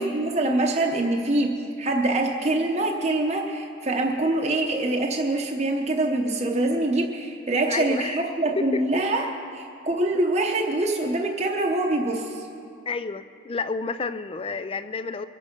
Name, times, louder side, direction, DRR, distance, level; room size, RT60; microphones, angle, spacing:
voice 1, 0.0-9.2 9.5-12.5, right 2 dB, 35° right, 0 dB, 0.8 m, -24 dB
voice 2, 7.5-8.3 8.6-8.8 9.1-9.4 12.9-15.3, left 4 dB, 25° left, 12 dB, 0.4 m, -30 dB
22.5 x 8.5 x 5.2 m, 2.4 s
head